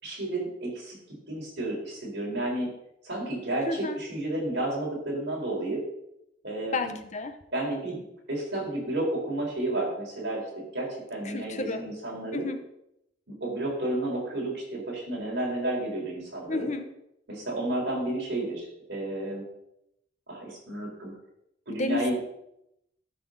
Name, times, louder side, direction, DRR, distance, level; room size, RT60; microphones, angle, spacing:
voice 1, 0.0-1.0 1.3-2.7 3.0-5.8 6.4-6.9 7.5-10.4 10.7-12.4 13.4-16.7 17.3-19.4 20.3-21.1 21.7-22.2, right 1 dB, 60° right, -4 dB, 4.4 m, -31 dB
voice 2, 3.7-4.0 6.7-7.3 11.2-11.8 12.3-12.6 16.5-16.9 21.7-22.1, left 3 dB, 40° left, 8 dB, 0.8 m, -31 dB
12.5 x 6.0 x 4.0 m, 0.82 s
head